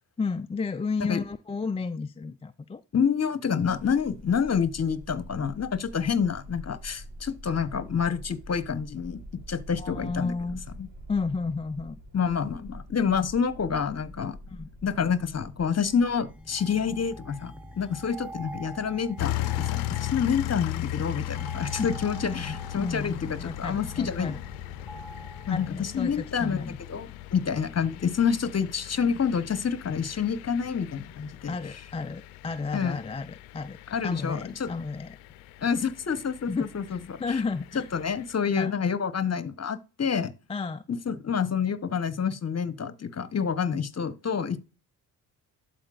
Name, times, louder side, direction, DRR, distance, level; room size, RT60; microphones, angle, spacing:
voice 1, 0.2-2.8 9.8-10.6 11.1-12.0 14.5-14.7 21.8-21.9 22.2-24.4 25.5-26.8 31.5-33.8 34.0-35.1 36.5-37.9 38.6-38.7 40.5-40.8, left 4 dB, 15° left, 0.3 m, -32 dB
voice 2, 2.9-10.3 10.8-10.9 12.1-14.4 14.8-24.3 25.5-26.6 26.9-31.8 32.7-33.0 33.9-34.7 35.6-37.4 37.7-40.3 40.9-44.6, left 6 dB, 30° left, 1.0 m, -28 dB
sound 1, 3.6-16.4, equal, 65° right, 2.3 m, -45 dB
sound 2, 15.7-25.7, right 1 dB, 5° right, 1.6 m, -45 dB
sound 3, 19.2-38.3, left 15 dB, 80° left, 0.6 m, -37 dB
12.0 x 4.3 x 2.5 m
hypercardioid pair, 40°, 47 cm